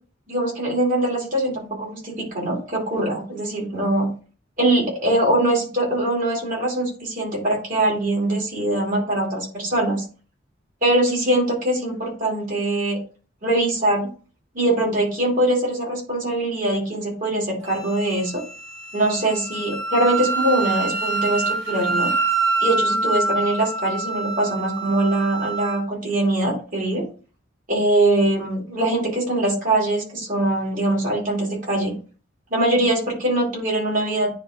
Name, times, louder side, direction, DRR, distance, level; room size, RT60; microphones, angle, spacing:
voice 1, 0.3-4.1 4.6-10.0 10.8-13.0 13.4-14.1 14.5-18.4 18.9-22.1 22.6-27.0 27.7-31.9 32.5-34.3, right 1 dB, 40° right, -2 dB, 3.0 m, -22 dB
Wind instrument woodwind instrument, 17.6-25.8, right 3 dB, 75° right, 3.1 m, -26 dB
9.5 x 3.2 x 3.8 m, 0.38 s
head